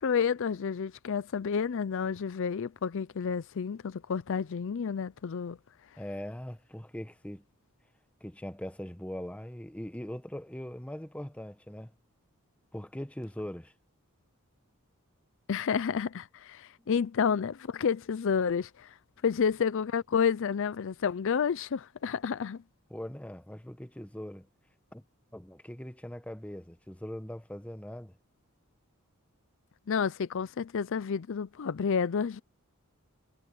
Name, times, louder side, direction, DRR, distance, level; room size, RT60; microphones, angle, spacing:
voice 1, 0.0-5.6 15.5-19.0 19.2-22.6 29.9-32.4, left 6 dB, 60° left, 0.4 m, -30 dB
voice 2, 6.0-7.4 8.2-11.9 12.7-13.7 22.9-24.5 24.9-25.0 25.3-28.1, equal, 5° left, 1.0 m, -41 dB
head